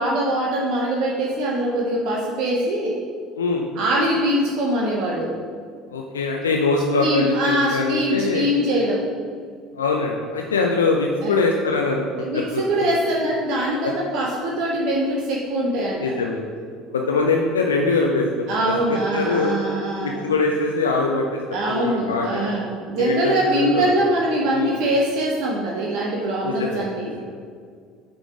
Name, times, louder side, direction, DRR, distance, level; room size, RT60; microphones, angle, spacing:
voice 1, 0.0-3.0 3.8-5.3 7.0-9.1 11.2-11.4 12.2-16.1 18.5-20.3 21.5-27.1, right 1 dB, 55° right, -2 dB, 0.8 m, -23 dB
voice 2, 5.9-8.5 9.7-12.9 13.8-13.9 16.0-16.5 16.9-19.6 20.0-22.5 23.0-23.9 24.5-24.8 26.4-27.3, left 3 dB, 75° left, 0 dB, 0.5 m, -23 dB
7.7 x 3.8 x 4.9 m, 2.1 s
figure-of-eight pair, 60°, 0 cm